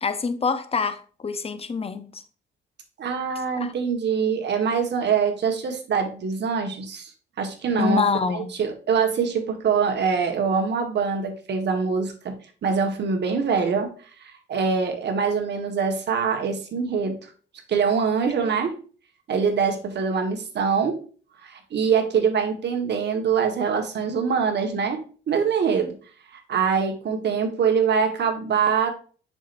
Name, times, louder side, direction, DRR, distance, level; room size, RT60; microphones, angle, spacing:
voice 1, 0.0-2.2 3.5-3.7 7.8-8.5, left 5 dB, 30° left, 0.8 m, -26 dB
voice 2, 3.0-7.1 7.4-8.1 8.3-12.3 12.6-13.9 14.2-17.2 17.7-18.7 19.3-21.0 21.4-25.0 25.3-25.9 26.5-28.9, right 6 dB, 60° right, 1.7 m, -24 dB
7.4 x 6.2 x 2.6 m
cardioid pair, 90°, 20 cm